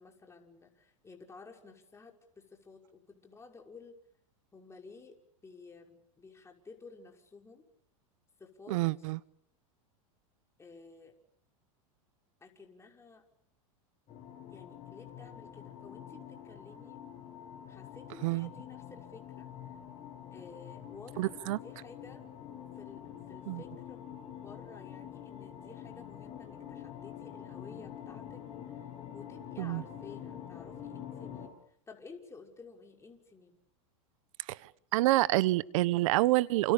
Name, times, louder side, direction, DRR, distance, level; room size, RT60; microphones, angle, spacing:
voice 1, 0.0-4.0 4.5-7.6 8.4-9.1 10.6-11.2 12.4-13.3 14.5-17.0 17.7-19.5 20.3-22.2 22.8-24.1 24.3-28.4 28.7-28.9 29.1-33.6, left 4 dB, 15° left, 5.9 m, -53 dB
voice 2, 8.7-9.2 18.2-18.5 21.2-21.6 23.5-23.6 29.6-29.8 34.5-34.6 34.9-36.7, right 18 dB, 70° right, 1.2 m, -27 dB
sound 1, 14.1-31.5, left 9 dB, 35° left, 7.0 m, -46 dB
29.5 x 28.0 x 6.9 m
supercardioid pair, 120°, 18 cm